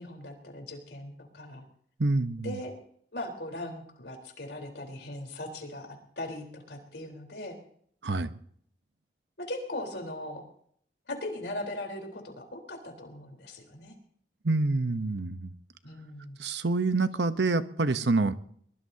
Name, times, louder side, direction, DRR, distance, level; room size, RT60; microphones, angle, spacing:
voice 1, 0.0-1.6 2.4-2.7 3.1-7.6 9.4-10.4 11.1-14.0 15.8-16.4, left 1 dB, 75° left, 3 dB, 4.0 m, -39 dB
voice 2, 2.0-2.6 8.0-8.4 14.4-15.5 16.4-18.3, right 3 dB, 85° right, 11 dB, 0.9 m, -27 dB
22.5 x 21.5 x 2.8 m, 0.63 s
head